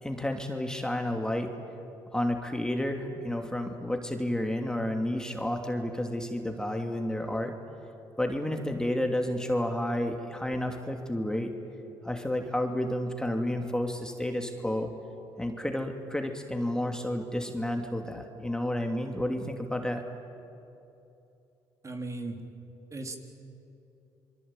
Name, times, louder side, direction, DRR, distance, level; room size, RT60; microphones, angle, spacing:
voice 1, 0.0-1.5 2.1-7.5 8.2-11.5 12.0-14.9 15.4-20.0, left 1 dB, 5° left, 4 dB, 2.8 m, -31 dB
voice 2, 21.8-22.4 22.9-23.2, right 2 dB, 35° right, 3 dB, 3.7 m, -36 dB
26.5 x 23.0 x 9.1 m, 2.8 s
supercardioid pair, 65°, 9 cm